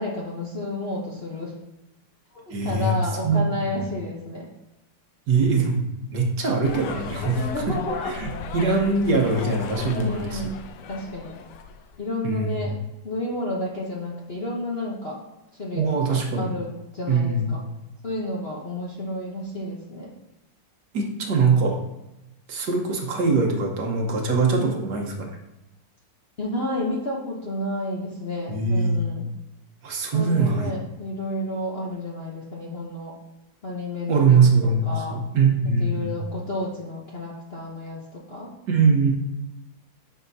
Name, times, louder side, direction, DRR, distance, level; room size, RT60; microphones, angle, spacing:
voice 1, 0.0-1.5 2.3-4.5 7.4-8.1 9.9-10.6 10.9-11.3 12.0-12.8 13.0-15.2 15.5-17.6 18.0-20.1 24.5-24.8 26.4-29.3 30.1-33.1 33.6-35.2 35.8-38.5, left 1 dB, 45° left, -3 dB, 0.9 m, -31 dB
voice 2, 2.5-3.4 5.3-5.8 6.1-7.8 8.0-10.4 12.2-12.7 15.8-16.5 17.1-17.6 20.9-21.8 22.5-25.3 28.5-29.0 29.8-30.7 34.1-36.2 38.7-39.1, right 4 dB, 65° right, 1 dB, 1.7 m, -22 dB
sound 1, 6.6-12.0, left 6 dB, 75° left, 1.2 m, -36 dB
9.1 x 6.0 x 2.7 m, 0.94 s
omnidirectional pair, 2.0 m